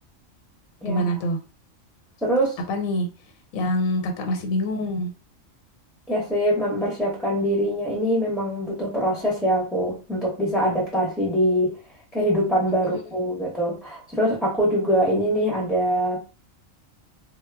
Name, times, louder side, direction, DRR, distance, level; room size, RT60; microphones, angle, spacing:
voice 1, 0.8-1.4 2.7-3.1 3.5-5.1, equal, 80° left, 1.1 m, -25 dB
voice 2, 2.2-2.6 6.1-11.7 12.1-16.2, equal, ahead, 0.6 m, -23 dB
2.2 x 2.0 x 3.3 m
omnidirectional pair, 1.4 m